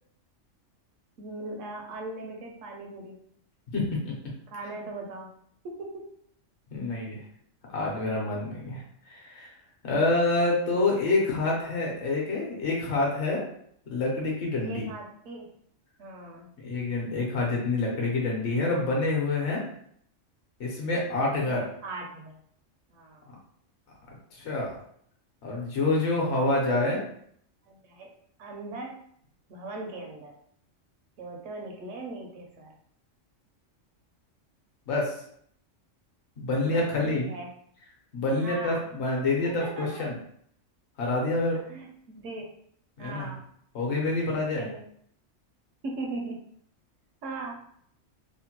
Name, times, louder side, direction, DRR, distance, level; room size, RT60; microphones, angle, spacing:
voice 1, 1.2-3.2 4.5-5.3 5.6-6.1 14.6-15.5 16.0-16.5 21.4-22.3 22.9-23.2 27.7-28.1 28.4-29.0 29.5-30.3 31.2-32.7 36.6-37.5 38.4-38.9 39.4-40.0 41.7-42.5 43.0-43.4 44.6-44.8 45.8-46.4 47.2-47.6, right 2 dB, 75° right, 0 dB, 1.0 m, -39 dB
voice 2, 3.7-4.1 6.7-7.2 7.7-9.5 9.8-13.4 13.9-14.9 16.6-19.6 20.6-21.6 24.3-24.7 25.4-27.0 34.9-35.2 36.4-37.3 38.1-40.1 41.0-41.6 43.0-43.3 43.7-44.7, left 2 dB, 60° left, -2 dB, 1.0 m, -27 dB
2.9 x 2.1 x 2.8 m, 0.66 s
omnidirectional pair, 1.3 m